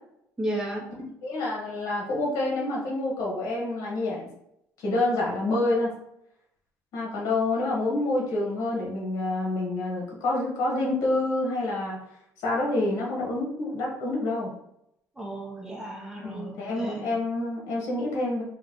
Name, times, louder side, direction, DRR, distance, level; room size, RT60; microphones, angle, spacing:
voice 1, 0.4-0.9 15.2-17.2, right 1 dB, 10° right, -2 dB, 0.8 m, -34 dB
voice 2, 1.2-4.3 4.8-5.9 6.9-12.0 12.4-14.5 16.2-18.4, left 2 dB, 70° left, -3 dB, 1.6 m, -27 dB
3.5 x 3.2 x 3.7 m, 0.77 s
cardioid pair, 140°, 6 cm